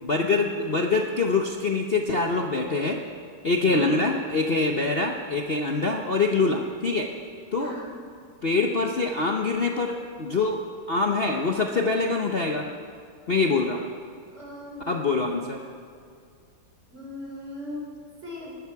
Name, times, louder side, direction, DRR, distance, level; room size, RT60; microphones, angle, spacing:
voice 1, 0.0-3.0 3.4-7.1 7.5-7.7 8.4-10.6 10.9-12.6 13.3-13.9 14.9-15.6, left 3 dB, 60° left, 2 dB, 0.6 m, -24 dB
voice 2, 7.6-7.9 14.3-15.0 16.9-18.6, left 1 dB, 30° right, -2 dB, 3.9 m, -39 dB
20.5 x 13.0 x 4.7 m, 2.3 s
omnidirectional pair, 2.3 m